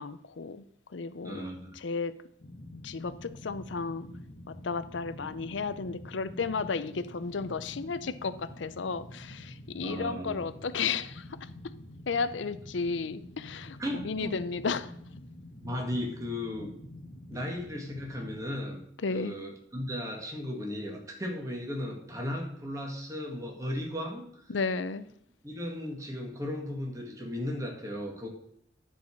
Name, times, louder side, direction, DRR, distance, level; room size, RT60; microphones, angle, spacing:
voice 1, 0.0-1.5 1.7-2.2 2.8-4.1 4.5-11.7 12.1-14.9 19.0-19.4 24.5-25.1, left 4 dB, 80° left, 0.6 m, -33 dB
voice 2, 1.2-1.7 9.7-10.4 13.8-14.4 15.6-16.7 17.3-18.8 19.1-24.5 25.4-28.3, left 1 dB, 15° right, 1.8 m, -36 dB
sound 1, 2.4-18.4, left 1 dB, 50° left, 1.3 m, -47 dB
11.0 x 4.9 x 6.5 m
head